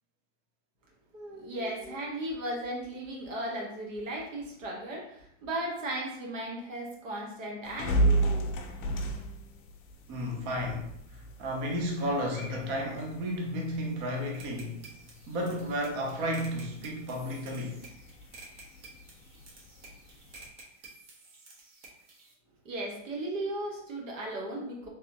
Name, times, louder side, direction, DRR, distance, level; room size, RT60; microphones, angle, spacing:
voice 1, 1.1-8.7 9.0-9.1 22.6-24.9, right 1 dB, 85° right, -2 dB, 1.4 m, -36 dB
sound 1, 7.6-20.5, right 2 dB, 40° left, 0.7 m, -35 dB
voice 2, 10.1-14.8 15.3-17.8, equal, 20° right, 0 dB, 0.3 m, -33 dB
sound 2, 14.3-22.3, right 3 dB, 65° right, 1.3 m, -52 dB
3.3 x 2.9 x 2.7 m, 0.74 s
hypercardioid pair, 140°, 38 cm